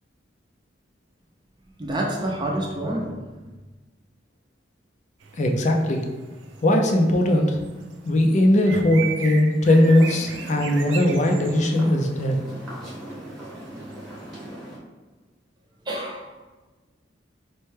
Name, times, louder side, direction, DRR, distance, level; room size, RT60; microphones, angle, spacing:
voice 1, 1.8-3.2 15.9-16.2, right 1 dB, 25° right, -2 dB, 0.5 m, -27 dB
sound 1, 5.2-14.5, right 6 dB, 85° right, 0.5 m, -40 dB
voice 2, 5.4-6.0 6.6-7.6 8.0-12.4, left 1 dB, 40° left, 2 dB, 0.4 m, -19 dB
sound 2, 9.7-14.8, equal, ahead, 0.9 m, -39 dB
4.2 x 2.2 x 3.2 m, 1.3 s
head